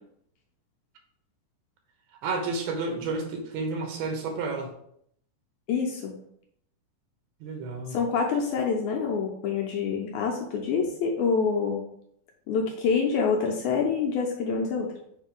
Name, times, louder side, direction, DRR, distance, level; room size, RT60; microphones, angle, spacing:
voice 1, 2.2-4.7 7.4-8.0, right 3 dB, 90° right, 3 dB, 3.0 m, -31 dB
voice 2, 5.7-6.2 7.9-11.8 12.5-14.9, left 5 dB, 80° left, 0 dB, 1.8 m, -26 dB
6.8 x 2.7 x 5.2 m, 0.69 s
omnidirectional pair, 4.2 m